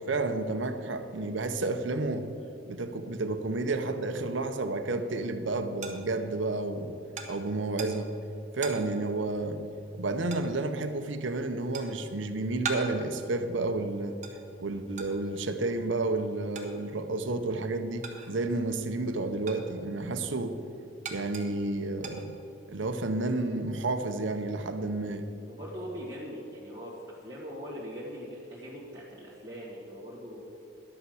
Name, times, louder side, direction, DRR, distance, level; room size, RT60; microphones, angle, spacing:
voice 1, 0.0-2.3 2.7-6.9 7.3-8.1 8.5-9.6 9.9-14.2 14.6-20.6 21.1-22.3 22.7-25.3, right 2 dB, 75° right, 8 dB, 0.8 m, -31 dB
sound 1, 5.8-18.6 18.9-22.8, right 4 dB, 40° right, 1.3 m, -43 dB
voice 2, 25.5-30.4, equal, 20° right, -10 dB, 1.7 m, -41 dB
11.5 x 5.7 x 7.7 m, 2.7 s
head